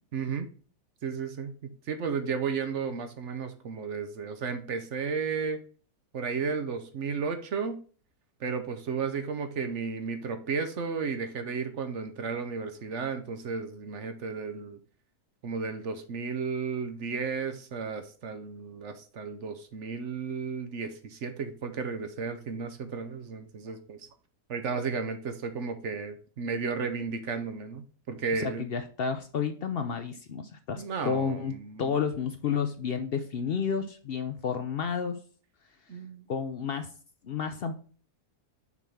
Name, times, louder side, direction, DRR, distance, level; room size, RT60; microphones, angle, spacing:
voice 1, 0.1-0.5 1.0-5.6 6.1-7.8 8.4-14.8 15.4-24.1 24.5-28.6 30.8-31.9 35.9-36.3, right 5 dB, 55° right, 8 dB, 0.9 m, -33 dB
voice 2, 28.4-35.2 36.3-36.9 37.2-37.7, left 6 dB, 70° left, 8 dB, 0.5 m, -31 dB
6.0 x 3.6 x 5.6 m, 0.40 s
omnidirectional pair, 1.6 m